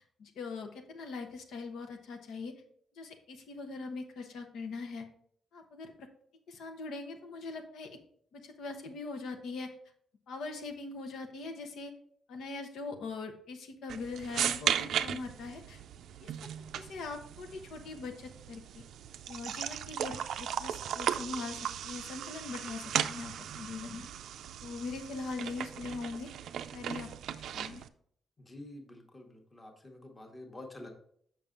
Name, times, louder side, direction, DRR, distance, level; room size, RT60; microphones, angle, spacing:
voice 1, 0.2-2.5 3.0-5.1 5.5-6.1 6.5-8.0 8.3-9.7 10.3-11.9 12.3-15.8 16.2-16.3 16.7-18.8 19.3-24.1 24.6-26.3 26.7-27.1 27.5-27.8, left 3 dB, 90° left, 4 dB, 1.0 m, -41 dB
sound 1, 13.9-27.9, right 9 dB, 85° right, 0.4 m, -37 dB
voice 2, 28.4-30.9, left 1 dB, 15° left, 3 dB, 1.0 m, -48 dB
7.0 x 5.8 x 3.7 m, 0.64 s
wide cardioid pair, 170°, 0 cm